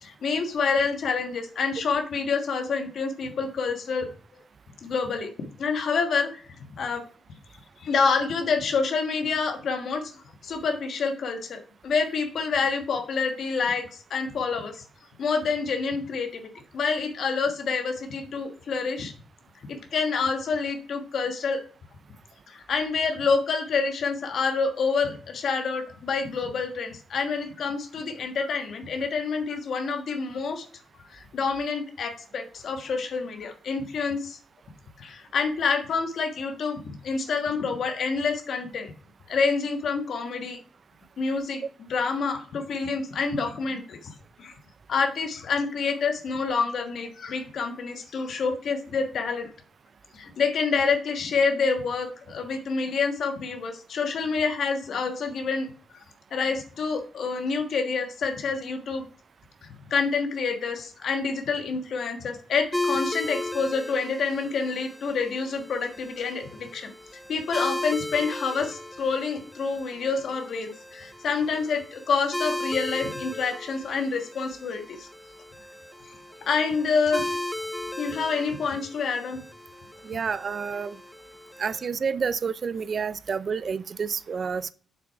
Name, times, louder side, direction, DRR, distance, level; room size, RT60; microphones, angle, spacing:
voice 1, 0.0-4.1 4.8-5.3 5.6-7.0 7.8-14.8 15.2-16.3 16.7-19.1 19.9-21.6 22.5-30.7 31.1-34.4 35.0-38.9 39.3-40.6 41.2-41.6 41.9-44.1 44.4-44.5 44.9-49.5 50.1-55.7 55.9-56.0 56.3-59.0 59.6-66.9 67.3-75.1 76.4-77.3 78.0-79.4, left 5 dB, 70° left, 4 dB, 1.4 m, -27 dB
sound 1, 62.7-81.9, left 1 dB, 10° left, 0.6 m, -36 dB
voice 2, 80.0-81.0 81.6-84.7, right 6 dB, 55° right, 16 dB, 0.5 m, -29 dB
7.6 x 6.1 x 4.6 m, 0.44 s
cardioid pair, 65°, 0 cm